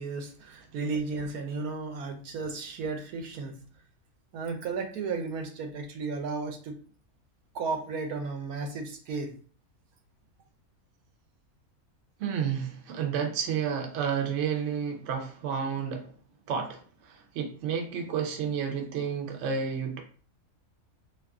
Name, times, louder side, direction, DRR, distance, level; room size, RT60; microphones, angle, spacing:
voice 1, 0.0-3.6 4.3-6.8 7.5-9.4, right 4 dB, 85° right, 1.1 m, -34 dB
voice 2, 12.2-16.1 16.5-20.0, right 7 dB, 65° right, 0.9 m, -31 dB
2.5 x 2.5 x 3.5 m
omnidirectional pair, 1.5 m